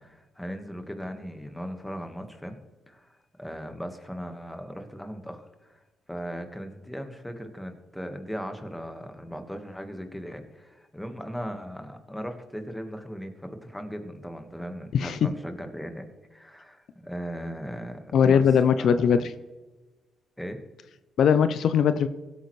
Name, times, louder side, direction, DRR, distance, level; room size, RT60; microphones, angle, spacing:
voice 1, 0.0-2.6 2.9-3.1 3.4-5.8 6.1-18.4 18.7-19.2 20.4-20.6, equal, 5° left, 6 dB, 1.5 m, -38 dB
voice 2, 18.1-19.3 21.2-22.1, left 7 dB, 65° left, 12 dB, 0.5 m, -20 dB
16.5 x 8.6 x 3.2 m, 1.2 s
cardioid pair, 90°, 0 cm